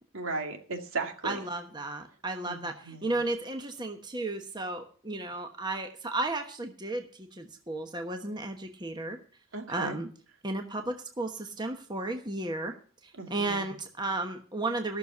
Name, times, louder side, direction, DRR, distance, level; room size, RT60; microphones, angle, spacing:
voice 1, 0.1-1.4 2.5-3.1 9.5-10.0 13.2-13.6, right 3 dB, 80° right, 3 dB, 2.2 m, -36 dB
voice 2, 1.2-9.2 9.7-10.1 10.4-12.7 13.0-15.0, right 2 dB, 20° right, 5 dB, 1.2 m, -34 dB
15.0 x 6.7 x 6.9 m, 0.42 s
head